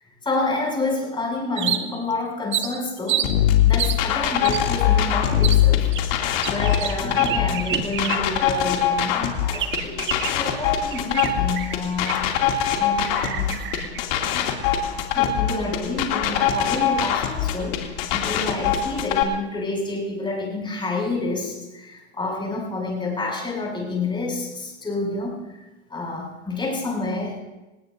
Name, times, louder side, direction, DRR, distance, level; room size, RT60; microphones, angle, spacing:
voice 1, 0.2-3.3 3.6-13.6 14.3-14.6 15.1-25.6 25.9-27.4, left 3 dB, 15° left, -2 dB, 6.8 m, -29 dB
sound 1, 1.6-2.1 2.5-3.3 3.8-4.0 4.4-4.6 5.4-5.6 5.9-8.5 8.7-8.8 9.5-10.5 10.9-12.3 12.6-12.8 13.0-14.0, right 9 dB, 35° right, 1.3 m, -28 dB
sound 2, 3.2-19.2, left 10 dB, 55° left, 2.7 m, -22 dB
27.0 x 18.5 x 2.7 m, 1.1 s
supercardioid pair, 125°, 35 cm